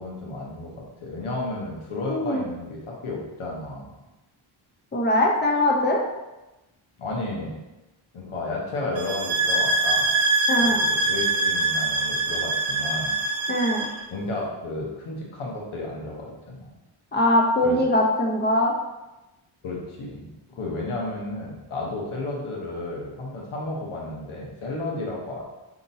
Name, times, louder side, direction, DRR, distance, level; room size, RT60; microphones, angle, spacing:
voice 1, 0.0-3.9 7.0-7.6 8.1-10.1 10.6-13.2 14.1-16.7 17.6-17.8 19.6-25.4, left 2 dB, 85° left, -2 dB, 1.1 m, -32 dB
voice 2, 2.1-2.4 4.9-6.0 10.5-10.8 13.5-13.9 17.1-18.7, left 1 dB, 20° left, 0 dB, 0.7 m, -21 dB
sound 1, 9.0-14.0, right 2 dB, 65° right, 0.7 m, -24 dB
5.1 x 2.9 x 2.7 m, 1.0 s
cardioid pair, 60°, 49 cm